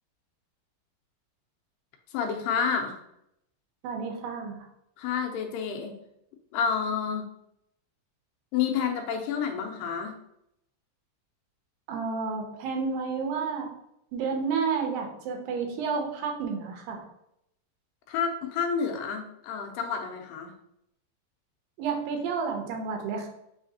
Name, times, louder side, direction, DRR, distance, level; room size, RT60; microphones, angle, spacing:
voice 1, 2.1-3.0 5.0-5.9 6.5-7.3 8.5-10.2 18.1-20.5, left 6 dB, 85° left, 4 dB, 2.2 m, -29 dB
voice 2, 3.8-4.7 11.9-13.7 14.1-17.0 21.8-23.3, right 5 dB, 85° right, 3 dB, 2.5 m, -30 dB
5.6 x 3.2 x 2.7 m, 0.78 s
omnidirectional pair, 4.0 m